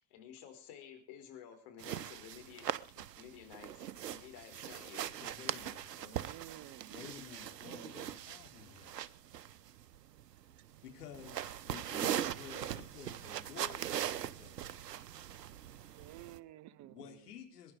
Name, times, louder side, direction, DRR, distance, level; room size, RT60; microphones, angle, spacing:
voice 1, 0.1-2.7 2.9-5.1, left 9 dB, 50° left, 6 dB, 4.8 m, -53 dB
sound 1, 1.8-16.4, right 10 dB, 75° right, 0.9 m, -41 dB
voice 2, 5.2-6.3 6.9-9.1 10.8-14.9 16.9-17.7, left 8 dB, 70° left, 4 dB, 3.6 m, -52 dB
voice 3, 6.1-7.1 10.6-10.7 16.0-17.3, right 14 dB, 35° right, 17 dB, 0.9 m, -53 dB
22.5 x 10.5 x 4.9 m, 0.41 s
figure-of-eight pair, 75°, 48 cm